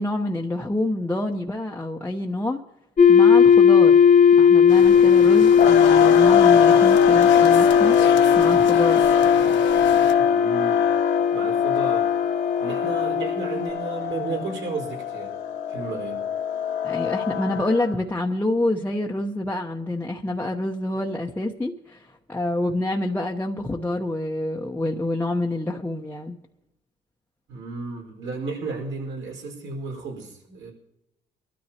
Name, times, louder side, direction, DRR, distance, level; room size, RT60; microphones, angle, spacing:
voice 1, 0.0-2.6 3.1-4.0 4.4-8.0 8.4-9.0 16.8-26.4, left 1 dB, 10° left, -1 dB, 1.0 m, -27 dB
sound 1, 3.0-13.7, left 7 dB, 45° left, 1.4 m, -17 dB
sound 2, 4.7-10.1, left 8 dB, 65° left, 1.2 m, -33 dB
sound 3, 5.6-17.9, left 8 dB, 85° left, 1.9 m, -24 dB
voice 2, 10.2-10.8 11.3-12.1 12.6-15.3 15.7-16.2 27.5-30.7, right 4 dB, 70° right, 1 dB, 4.9 m, -33 dB
23.5 x 13.0 x 2.9 m, 0.87 s
cardioid pair, 90°, 20 cm